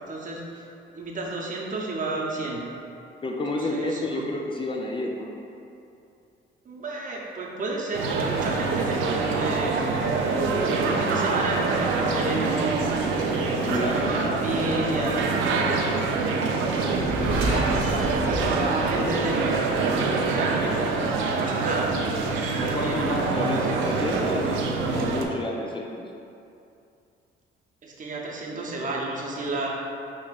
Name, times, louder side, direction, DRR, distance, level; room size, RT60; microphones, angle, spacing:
voice 1, 0.1-2.6 3.5-4.3 6.6-9.9 10.5-13.1 13.7-15.3 17.5-22.0 22.2-22.4 22.7-23.0 23.4-23.8 27.8-29.7, right 2 dB, 40° right, -2 dB, 0.7 m, -32 dB
voice 2, 3.2-5.3 13.6-16.1 22.6-26.0, left 2 dB, 25° left, 0 dB, 0.4 m, -30 dB
sound 1, 7.9-25.2, right 4 dB, 85° right, 0.4 m, -25 dB
sound 2, 16.9-19.8, equal, 5° right, 1.1 m, -30 dB
6.1 x 2.9 x 2.4 m, 2.6 s
cardioid pair, 90°, 20 cm